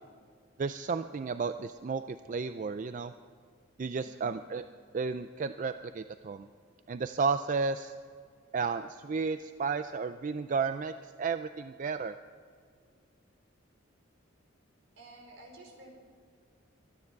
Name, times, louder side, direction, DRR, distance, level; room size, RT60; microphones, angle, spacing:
voice 1, 0.6-3.1 3.8-4.6 4.9-6.5 6.9-7.9 8.5-12.1, right 5 dB, 40° right, 10 dB, 0.4 m, -33 dB
voice 2, 4.0-4.3 15.0-15.9, right 2 dB, 70° right, 1 dB, 4.1 m, -52 dB
24.5 x 9.8 x 4.7 m, 2.1 s
head